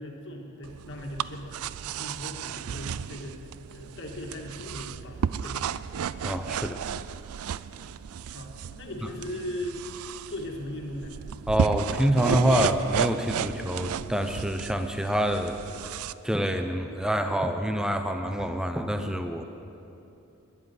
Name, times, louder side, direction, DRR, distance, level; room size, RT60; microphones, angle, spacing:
voice 1, 0.0-3.4 3.7-5.7 8.3-8.5 8.8-9.8 10.3-11.2, left 1 dB, 60° left, 1 dB, 2.2 m, -38 dB
sound 1, 0.6-16.1, right 7 dB, 90° right, 0.4 m, -33 dB
voice 2, 6.2-6.8 11.5-15.6 15.8-16.0 16.2-19.4, equal, 5° right, 6 dB, 0.7 m, -26 dB
12.5 x 11.0 x 9.6 m, 2.8 s
head